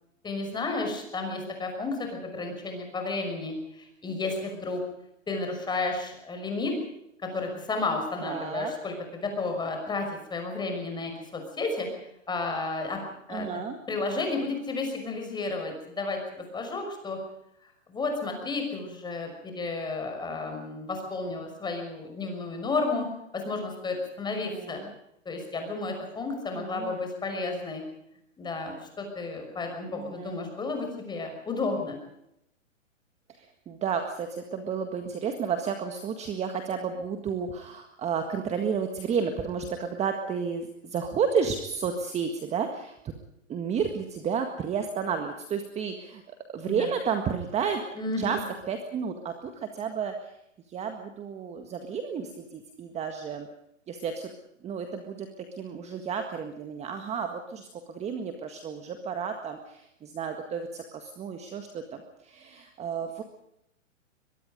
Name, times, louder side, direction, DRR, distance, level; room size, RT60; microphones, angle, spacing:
voice 1, 0.2-4.8 5.3-6.8 7.2-11.9 12.3-13.0 13.3-13.6 13.9-17.2 17.6-23.1 23.3-24.8 25.2-27.8 28.4-32.0 46.6-46.9 47.9-48.4, left 3 dB, 10° left, 4 dB, 6.0 m, -32 dB
voice 2, 8.2-8.7 13.3-13.8 24.3-24.9 26.5-27.0 29.9-30.4 33.3-43.0 43.5-47.8 48.2-48.4 48.7-50.3 50.7-53.5 53.9-54.3 54.6-63.2, right 6 dB, 15° right, 6 dB, 1.7 m, -32 dB
23.5 x 22.5 x 5.2 m, 0.80 s
hypercardioid pair, 140°, 39 cm